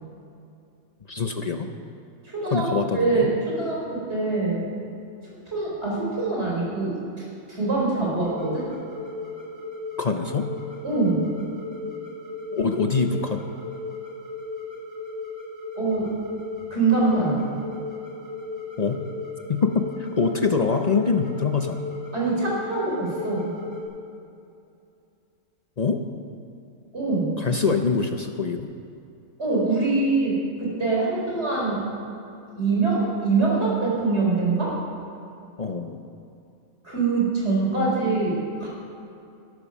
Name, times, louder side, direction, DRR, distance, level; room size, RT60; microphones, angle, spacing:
voice 1, 1.1-1.7 2.5-3.3 10.0-10.5 12.5-13.4 18.8-19.0 19.5-19.9 20.2-21.8 25.8-26.0 27.4-28.7 35.6-36.0, left 5 dB, 45° left, 5 dB, 0.6 m, -24 dB
voice 2, 2.2-2.6 2.9-4.6 5.5-8.6 10.8-11.2 15.7-16.1 16.7-17.5 22.1-23.5 26.9-27.3 29.4-31.8 32.5-34.7 36.8-38.3 38.6-38.7, right 3 dB, 50° right, -5 dB, 4.6 m, -24 dB
sound 1, 8.2-23.8, left 3 dB, 85° right, 3.7 m, -36 dB
13.0 x 12.5 x 6.0 m, 2.6 s
omnidirectional pair, 1.5 m